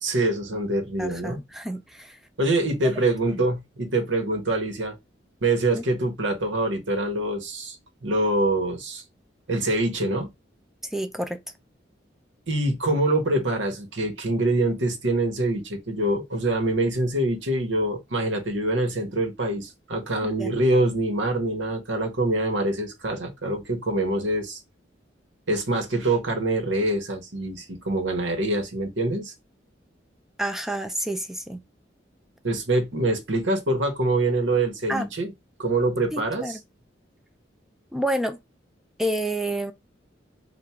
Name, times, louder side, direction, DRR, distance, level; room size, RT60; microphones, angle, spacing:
voice 1, 0.0-1.4 2.4-4.9 5.4-7.8 8.0-9.0 9.5-10.3 12.5-24.6 25.5-29.3 32.4-35.3 35.6-36.6, right 2 dB, 80° right, 1.2 m, -25 dB
voice 2, 1.0-2.2 5.7-5.8 10.9-11.4 20.2-20.6 30.4-31.6 34.9-35.1 36.1-36.6 37.9-38.4 39.0-39.7, right 1 dB, ahead, 0.4 m, -29 dB
3.5 x 2.5 x 4.3 m
head